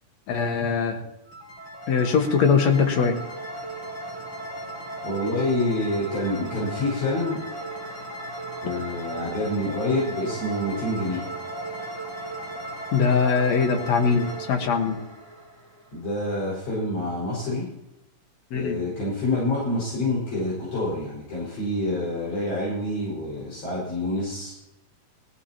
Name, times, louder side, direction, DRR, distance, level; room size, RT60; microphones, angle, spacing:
voice 1, 0.3-1.0 1.9-3.2 12.9-15.0 18.5-18.8, left 5 dB, 65° left, 4 dB, 2.7 m, -21 dB
sound 1, 1.3-16.1, right 2 dB, 40° left, 4.7 m, -36 dB
voice 2, 5.0-7.4 8.6-11.2 15.9-17.7 18.5-24.5, left 1 dB, 85° left, -6 dB, 6.9 m, -27 dB
21.0 x 16.0 x 3.0 m, 0.93 s
omnidirectional pair, 3.4 m